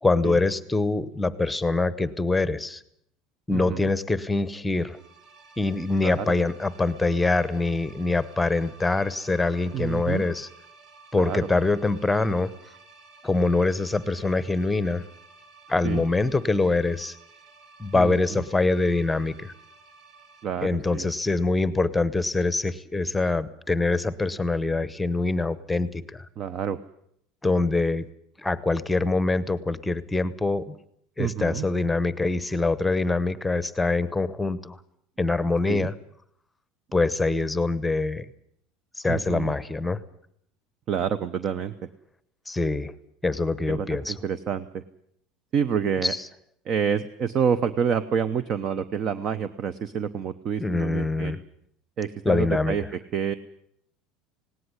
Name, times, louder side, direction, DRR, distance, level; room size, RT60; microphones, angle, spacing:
voice 1, 0.0-2.8 3.5-5.0 5.6-10.5 11.1-12.5 13.2-15.0 15.7-17.2 17.8-19.5 20.6-26.3 27.4-28.1 28.4-30.7 31.2-34.8 35.2-35.9 36.9-38.2 39.0-40.0 42.5-42.9 43.2-44.2 46.0-46.2 50.6-51.4 52.2-52.7, left 3 dB, 5° left, 16 dB, 1.0 m, -24 dB
voice 2, 3.5-3.9 6.0-6.3 9.7-10.2 11.1-11.4 15.8-16.0 17.9-18.4 20.4-21.1 26.4-26.8 31.2-31.7 35.7-35.9 39.1-39.5 40.9-41.7 43.7-44.8 45.5-46.1 46.7-51.3 52.0-53.3, right 7 dB, 35° right, 14 dB, 0.9 m, -28 dB
sound 1, 4.7-20.4, right 4 dB, 55° right, 5.2 m, -52 dB
18.5 x 18.0 x 9.8 m, 0.71 s
cardioid pair, 155°, 0 cm